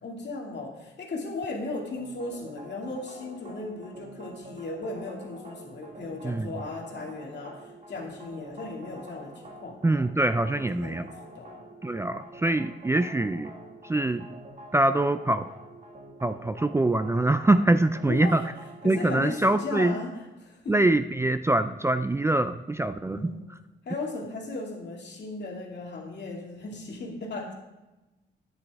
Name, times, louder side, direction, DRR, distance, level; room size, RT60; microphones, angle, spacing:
voice 1, 0.0-9.8 10.5-11.0 11.3-11.6 18.0-18.4 18.8-20.7 23.1-23.5 23.9-27.5, left 2 dB, 60° left, 0 dB, 2.3 m, -36 dB
sound 1, 2.0-19.9, right 1 dB, 40° right, 1.9 m, -47 dB
voice 2, 9.8-11.1 11.8-13.5 13.8-14.3 14.7-15.5 16.2-18.4 18.8-20.0 20.7-23.3, right 2 dB, 15° right, 11 dB, 0.4 m, -24 dB
9.8 x 9.4 x 3.5 m, 1.1 s
cardioid pair, 70°, 20 cm